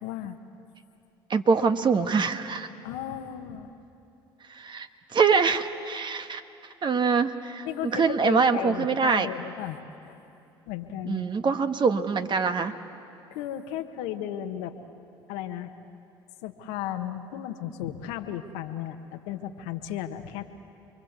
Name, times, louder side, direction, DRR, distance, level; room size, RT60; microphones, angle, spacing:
voice 1, 0.0-0.4 2.8-3.7 7.6-10.2 10.7-11.2 13.3-14.8 15.3-15.7 16.4-20.4, left 11 dB, 75° left, 7 dB, 1.4 m, -35 dB
voice 2, 1.3-2.7 4.5-4.9 5.1-6.4 6.8-9.3 11.1-12.7, right 5 dB, 40° right, 8 dB, 1.5 m, -24 dB
28.5 x 23.0 x 8.2 m, 2.7 s
hypercardioid pair, 60°, 12 cm